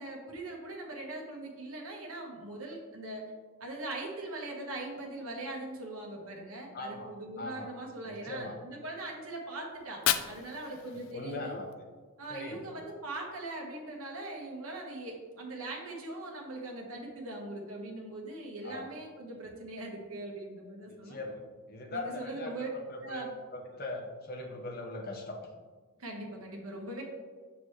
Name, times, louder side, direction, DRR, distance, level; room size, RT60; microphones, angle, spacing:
voice 1, 0.0-3.3 3.6-11.5 12.2-21.2 21.9-22.7 23.0-23.3 26.0-27.0, right 2 dB, 75° right, 0 dB, 1.3 m, -41 dB
voice 2, 6.7-7.7 8.0-8.6 10.7-11.7 12.3-12.7 18.6-18.9 20.9-23.2 23.5-25.4, left 2 dB, 45° left, 1 dB, 0.9 m, -41 dB
Fire, 9.7-11.8, left 11 dB, 65° left, 0.4 m, -34 dB
6.2 x 6.0 x 3.2 m, 1.5 s
head